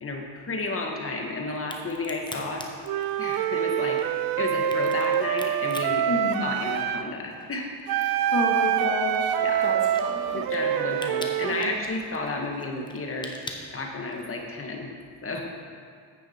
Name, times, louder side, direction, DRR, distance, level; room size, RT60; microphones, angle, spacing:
voice 1, 0.0-2.6 3.2-6.1 6.4-7.7 9.4-9.7 10.3-13.3 13.7-14.9 15.2-15.4, left 3 dB, 40° left, 1 dB, 1.7 m, -32 dB
Crack, 1.6-7.1 7.4-14.4, left 2 dB, 15° left, 1.1 m, -43 dB
Wind instrument woodwind instrument, 2.9-7.1 7.9-11.8, right 10 dB, 85° right, 0.5 m, -26 dB
voice 2, 6.1-6.5 8.0-9.4 9.6-9.8 10.0-10.4 11.5-11.7, left 3 dB, 60° left, -3 dB, 2.3 m, -30 dB
9.6 x 8.8 x 4.6 m, 2.1 s
cardioid pair, 90°, 35 cm